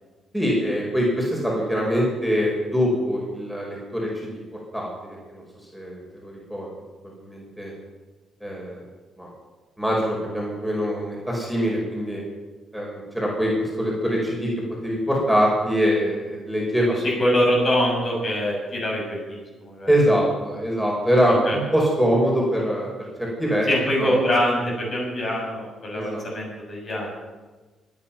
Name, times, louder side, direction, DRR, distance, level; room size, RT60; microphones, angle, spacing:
voice 1, 0.3-4.4 4.7-4.9 5.3-5.4 5.7-6.7 7.0-7.7 8.4-8.8 9.2-9.3 9.8-12.2 12.7-14.5 14.8-16.9 19.9-22.9 23.2-23.7 24.0-24.2 25.9-26.2, equal, 5° left, -3 dB, 5.1 m, -23 dB
voice 2, 17.2-19.9 21.3-21.6 23.7-27.1, equal, 45° left, -2 dB, 6.9 m, -24 dB
23.5 x 9.7 x 5.9 m, 1.3 s
cardioid pair, 90°, 0 cm